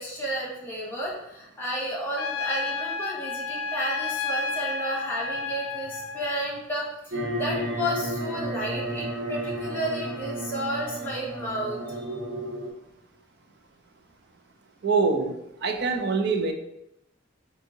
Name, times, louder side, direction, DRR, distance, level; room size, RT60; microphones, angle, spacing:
voice 1, 0.0-12.2, equal, 10° left, -4 dB, 1.1 m, -32 dB
Trumpet, 2.2-6.5, left 4 dB, 75° left, 0.3 m, -31 dB
sound 1, 7.1-12.7, right 1 dB, 85° right, 1.4 m, -32 dB
voice 2, 14.8-16.5, right 4 dB, 60° right, 5 dB, 0.5 m, -25 dB
3.7 x 2.7 x 3.8 m, 0.84 s
head